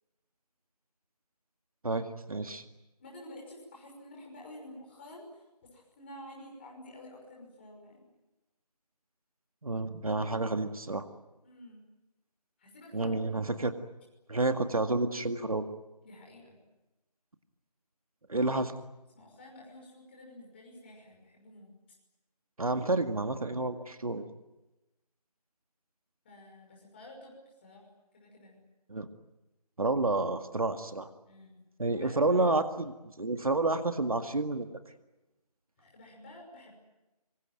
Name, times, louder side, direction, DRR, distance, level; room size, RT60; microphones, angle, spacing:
voice 1, 1.8-2.6 9.6-11.0 12.9-13.7 14.3-15.7 18.3-18.8 22.6-24.3 28.9-29.1 29.8-31.1 31.8-34.7, right 2 dB, 60° right, 8 dB, 2.0 m, -30 dB
voice 2, 3.0-8.0 11.4-11.8 12.6-13.5 16.0-16.6 19.1-22.0 26.2-27.3 27.6-28.6 31.3-31.6 31.9-32.5 35.8-36.7, left 1 dB, 15° left, -1 dB, 6.0 m, -50 dB
25.5 x 24.0 x 9.2 m, 0.99 s
figure-of-eight pair, 170°, 20 cm